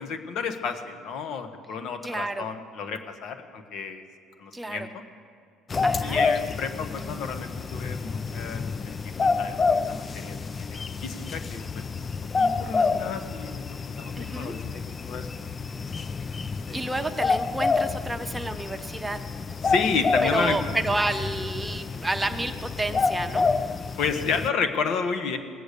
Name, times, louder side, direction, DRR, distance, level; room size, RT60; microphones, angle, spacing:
voice 1, 0.0-4.0 4.4-5.0 6.0-11.8 12.4-14.8 15.1-15.3 16.7-16.8 19.6-20.6 24.0-25.4, left 5 dB, 65° left, 8 dB, 1.2 m, -31 dB
voice 2, 2.0-2.5 4.5-4.9 5.8-6.2 14.1-14.5 16.7-19.2 20.2-23.5, right 2 dB, 10° right, 6 dB, 0.8 m, -30 dB
sound 1, 5.7-24.5, left 4 dB, 30° left, 0.4 m, -28 dB
19.0 x 7.8 x 6.8 m, 2.1 s
cardioid pair, 100°, 0 cm